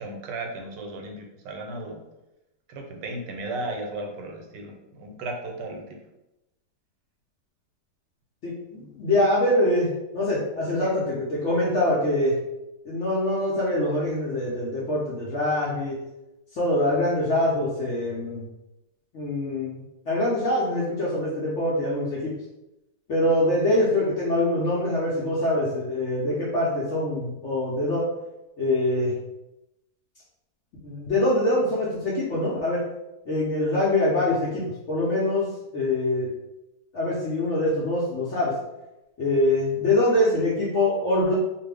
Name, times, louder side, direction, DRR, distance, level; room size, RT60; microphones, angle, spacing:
voice 1, 0.0-2.0 2.7-6.0 8.7-9.1, right 2 dB, 85° right, 2 dB, 1.2 m, -35 dB
voice 2, 8.4-12.4 12.8-15.9 16.5-18.5 19.1-22.3 23.1-28.1 28.6-29.2 30.8-32.8 33.3-34.6 34.9-35.5 35.7-36.3 36.9-38.5 39.2-41.3, left 1 dB, 65° left, -6 dB, 0.7 m, -24 dB
2.6 x 2.4 x 3.3 m, 0.95 s
omnidirectional pair, 1.9 m